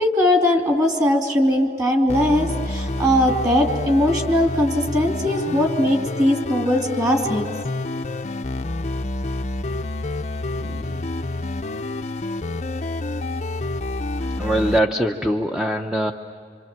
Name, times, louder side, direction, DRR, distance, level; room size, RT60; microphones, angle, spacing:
voice 1, 0.0-7.4, left 1 dB, 20° right, 2 dB, 2.8 m, -20 dB
sound 1, 2.1-14.8, left 2 dB, 40° left, 0.6 m, -28 dB
voice 2, 10.6-11.1 14.2-16.1, right 1 dB, 5° right, 4 dB, 0.7 m, -23 dB
26.5 x 26.0 x 7.5 m, 2.4 s
head